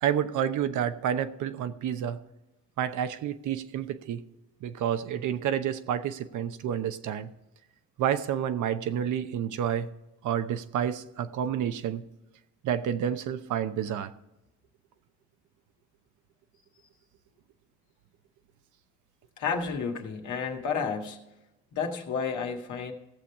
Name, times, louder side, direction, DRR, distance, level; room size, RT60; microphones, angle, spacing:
voice 1, 0.0-2.2 2.8-4.2 4.6-7.3 8.0-9.9 10.2-12.0 12.6-14.1, right 9 dB, 80° right, 10 dB, 0.9 m, -29 dB
voice 2, 19.4-21.2 21.7-22.9, left 5 dB, 80° left, 3 dB, 1.9 m, -31 dB
16.5 x 7.2 x 4.7 m, 0.96 s
cardioid pair, 90°, 30 cm